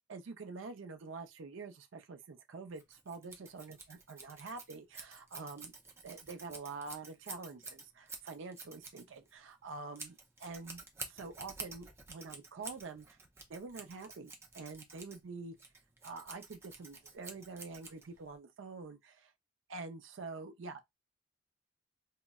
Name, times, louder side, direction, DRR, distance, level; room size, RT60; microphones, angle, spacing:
voice 1, 0.1-5.7 6.0-13.1 13.5-15.6 16.0-19.3 19.7-20.8, right 4 dB, 70° right, 0.5 m, -46 dB
Scissors, 2.7-18.4, right 4 dB, 15° right, 0.5 m, -50 dB
3.6 x 2.0 x 2.2 m
head